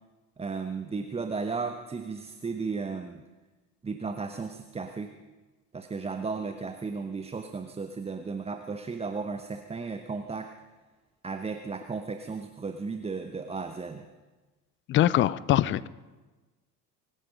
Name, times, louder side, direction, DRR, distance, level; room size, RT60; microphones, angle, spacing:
voice 1, 0.4-3.2 3.8-5.1 5.7-10.5 11.2-14.1, right 4 dB, 10° right, 7 dB, 0.8 m, -34 dB
voice 2, 14.9-15.9, left 13 dB, 25° left, 20 dB, 0.4 m, -23 dB
24.0 x 10.5 x 5.2 m, 1.2 s
figure-of-eight pair, 65°, 49 cm